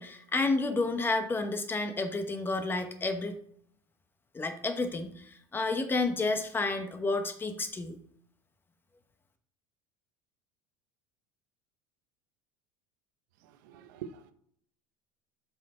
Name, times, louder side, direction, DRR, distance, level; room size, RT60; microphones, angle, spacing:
voice 1, 0.0-3.4 4.3-8.0, left 3 dB, 20° left, 1.0 m, -30 dB
voice 2, 13.4-14.3, right 8 dB, 85° right, 0.8 m, -45 dB
7.4 x 4.6 x 4.4 m
supercardioid pair, 110°, 10 cm